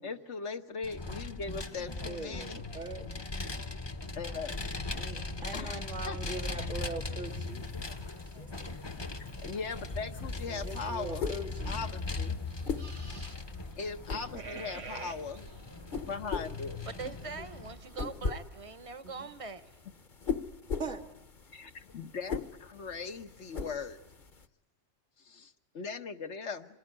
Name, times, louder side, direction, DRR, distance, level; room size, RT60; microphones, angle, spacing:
voice 1, 0.0-2.6 4.1-4.6 5.5-5.8 6.1-6.2 9.2-11.3 11.7-12.4 13.8-15.4 16.0-16.8 17.4-17.5 21.5-24.0 25.3-26.8, left 4 dB, 70° left, 6 dB, 1.5 m, -39 dB
Vehicle, 0.8-17.7, left 3 dB, 25° left, 0.9 m, -39 dB
voice 2, 2.0-3.1 3.4-3.5 4.9-7.7 8.3-8.7 10.5-11.9 13.1-13.2 14.1-14.8 19.0-19.3 20.7-21.0, right 3 dB, 90° right, 2 dB, 2.5 m, -42 dB
sound 1, 7.3-24.5, left 5 dB, 45° left, 1.2 m, -42 dB
sound 2, 12.4-18.6, right 4 dB, 60° right, 1.8 m, -49 dB
voice 3, 16.9-19.7, right 4 dB, 30° right, 12 dB, 1.0 m, -42 dB
27.0 x 20.0 x 9.9 m, 0.94 s
omnidirectional pair, 1.2 m